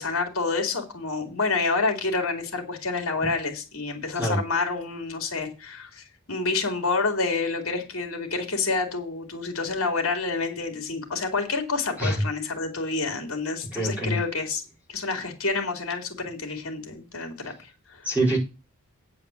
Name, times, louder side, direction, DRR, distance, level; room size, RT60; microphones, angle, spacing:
voice 1, 0.0-14.6 14.9-18.1, left 3 dB, 65° left, 4 dB, 3.1 m, -28 dB
voice 2, 13.7-14.2 18.0-18.4, right 1 dB, 5° right, -4 dB, 4.7 m, -24 dB
9.6 x 5.1 x 7.3 m, 0.31 s
head